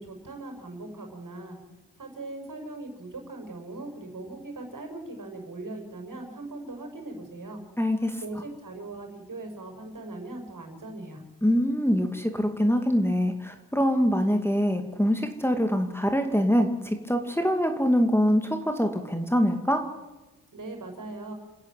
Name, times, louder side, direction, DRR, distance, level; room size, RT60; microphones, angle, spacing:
voice 1, 0.0-1.6 2.0-7.6 8.2-11.2 20.5-21.3, right 2 dB, 50° right, 4 dB, 6.0 m, -39 dB
voice 2, 7.8-8.2 11.4-19.8, equal, 5° left, 4 dB, 2.5 m, -24 dB
29.0 x 9.9 x 9.2 m, 1.1 s
supercardioid pair, 45°, 40 cm